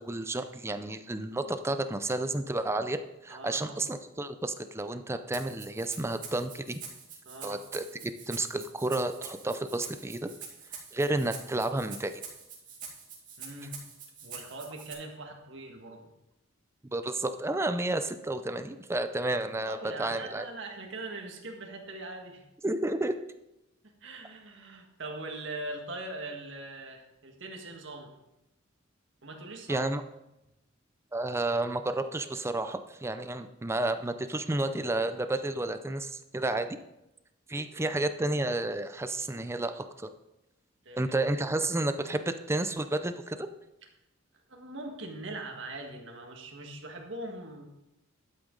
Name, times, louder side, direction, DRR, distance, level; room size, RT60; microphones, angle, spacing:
voice 1, 0.0-6.8 7.4-10.3 10.7-12.2 16.9-20.5 22.6-23.1 29.7-30.0 31.1-36.8 37.5-40.1 40.9-43.5, right 2 dB, 15° right, 9 dB, 0.4 m, -31 dB
voice 2, 3.3-3.8 7.3-7.6 13.4-13.7 14.2-16.0 19.7-22.5 24.0-28.1 29.2-29.8 37.6-38.0 40.8-41.1 44.5-47.7, right 2 dB, 65° right, 2 dB, 1.7 m, -41 dB
Rattle (instrument), 5.3-14.9, right 6 dB, 45° right, 2.5 m, -45 dB
12.0 x 7.9 x 3.9 m, 0.91 s
head